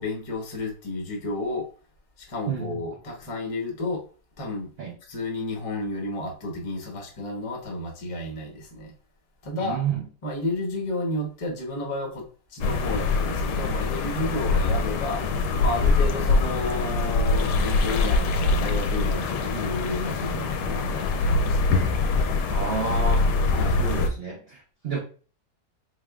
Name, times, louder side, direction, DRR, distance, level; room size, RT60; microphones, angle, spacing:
voice 1, 0.0-1.7 2.2-4.0 4.4-4.7 5.1-8.9 9.4-9.8 10.2-15.2 15.6-21.8 23.5-23.9, left 2 dB, 30° left, 1 dB, 0.6 m, -32 dB
voice 2, 9.6-10.0 15.8-15.9 22.5-23.3 23.8-25.0, right 6 dB, 65° right, 0 dB, 0.6 m, -30 dB
sound 1, 12.6-24.1, left 3 dB, 80° left, 1.2 m, -24 dB
4.0 x 3.5 x 2.3 m, 0.39 s
omnidirectional pair, 1.9 m